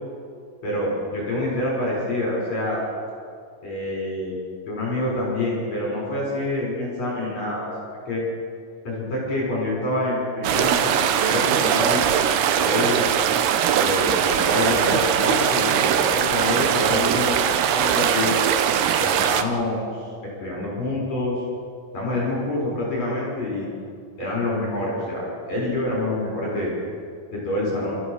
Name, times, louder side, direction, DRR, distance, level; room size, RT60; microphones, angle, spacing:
voice 1, 0.6-2.8 3.6-4.4 4.7-7.7 8.1-8.2 8.9-12.0 12.4-13.0 13.8-18.3 19.0-20.1 20.4-21.4 21.9-23.7 24.2-26.7 27.3-28.0, left 1 dB, 40° left, -4 dB, 7.0 m, -26 dB
sound 1, 10.4-19.4, right 9 dB, 75° right, 2.8 m, -21 dB
30.0 x 15.0 x 6.7 m, 2.3 s
omnidirectional pair, 5.0 m